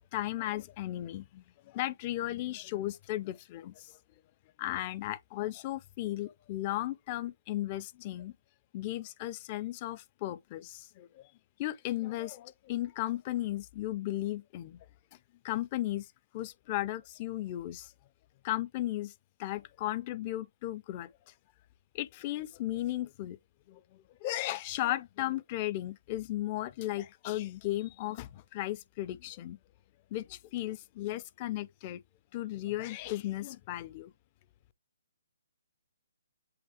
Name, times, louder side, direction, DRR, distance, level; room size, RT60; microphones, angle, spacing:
voice 1, 0.1-3.9 4.6-8.3 8.7-11.3 11.6-14.8 15.4-16.1 16.3-17.9 18.4-19.1 19.4-21.1 21.9-23.4 23.7-29.6 30.1-32.0 32.3-34.1, left 15 dB, 30° left, 0.6 m, -35 dB
7.9 x 3.4 x 3.5 m
hypercardioid pair, 160°, 0 cm